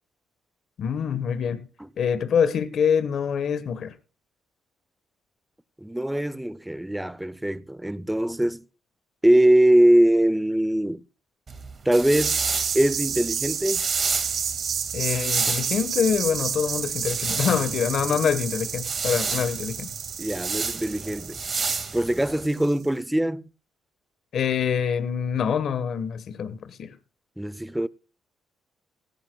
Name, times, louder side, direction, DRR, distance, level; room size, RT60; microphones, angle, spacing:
voice 1, 0.8-1.6 2.0-3.9 14.9-19.9 24.3-27.0, left 7 dB, 60° left, 1.2 m, -25 dB
voice 2, 5.8-8.6 9.2-11.0 11.9-12.4 12.7-13.8 18.1-18.2 20.2-21.4 21.9-23.4 27.4-27.9, right 1 dB, 5° right, 0.5 m, -22 dB
sound 1, 11.5-22.4, right 4 dB, 40° right, 1.9 m, -30 dB
sound 2, 12.2-22.7, right 7 dB, 60° right, 0.9 m, -31 dB
17.0 x 14.0 x 2.3 m
cardioid pair, 90°, 0 cm